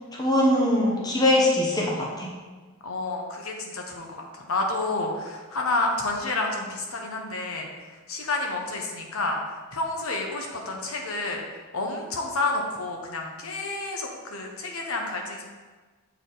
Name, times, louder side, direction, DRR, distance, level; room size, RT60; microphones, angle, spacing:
voice 1, 0.1-2.3, left 1 dB, 20° left, -3 dB, 0.9 m, -22 dB
voice 2, 2.8-9.4 9.7-11.4 11.7-15.4, left 2 dB, 80° left, 1 dB, 1.0 m, -30 dB
6.9 x 4.4 x 3.9 m, 1.4 s
head